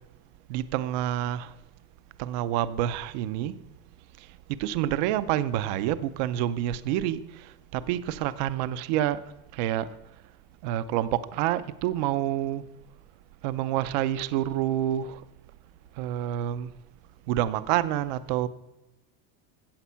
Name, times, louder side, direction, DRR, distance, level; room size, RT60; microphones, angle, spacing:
voice 1, 0.5-1.5 2.2-3.6 4.2-9.2 9.5-9.9 10.6-12.7 13.4-15.2 16.0-16.7 17.3-18.5, right 12 dB, 35° right, 0.4 m, -28 dB
14.5 x 8.0 x 5.6 m
supercardioid pair, 175°, 41 cm